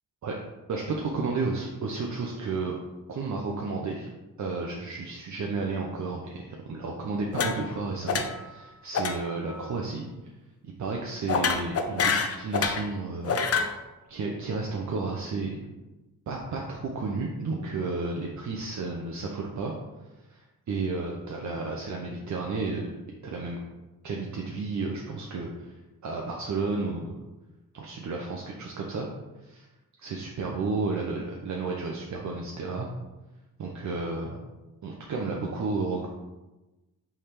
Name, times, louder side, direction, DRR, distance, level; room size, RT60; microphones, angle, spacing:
voice 1, 0.7-2.7 3.1-4.1 4.4-10.0 10.8-13.4 14.1-15.7 16.3-19.7 20.3-22.9 23.2-23.6 24.0-25.7 26.0-27.1 27.7-29.1 29.4-29.7 30.0-32.9 33.6-34.4 34.8-36.1, right 3 dB, 50° right, -1 dB, 0.7 m, -32 dB
sound 1, 7.3-7.8 8.1-8.5 8.9-9.2 9.5-9.7 11.3-12.9 13.2-13.7, left 5 dB, 40° left, 0.5 m, -27 dB
3.6 x 3.3 x 4.4 m, 1.1 s
cardioid pair, 75°, 37 cm